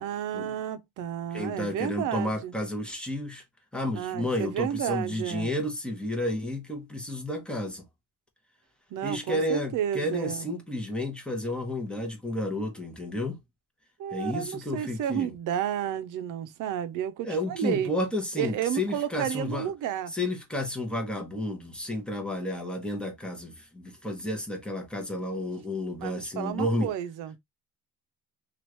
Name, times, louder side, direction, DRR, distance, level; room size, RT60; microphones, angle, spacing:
voice 1, 0.0-2.5 3.9-5.5 8.9-10.4 14.0-17.9 18.4-20.1 26.0-27.4, right 10 dB, 70° right, 0.6 m, -31 dB
voice 2, 1.3-3.4 3.7-7.8 9.0-13.4 14.1-15.3 17.2-19.7 20.1-26.9, left 1 dB, 5° left, 0.9 m, -31 dB
3.0 x 2.5 x 3.0 m
cardioid pair, 140°, 32 cm